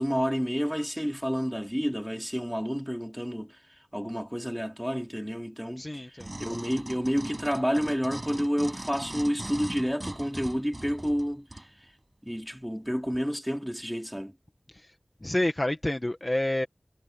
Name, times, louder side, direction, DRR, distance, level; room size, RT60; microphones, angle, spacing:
voice 1, 0.0-11.9 12.2-14.3, equal, ahead, 3.2 m, -30 dB
voice 2, 5.8-6.3 14.7-14.9 15.2-16.7, left 1 dB, 30° left, 1.6 m, -29 dB
sound 1, 6.2-11.7 12.3-12.4, right 1 dB, 30° right, 6.1 m, -40 dB
wide cardioid pair, 50°, 0 cm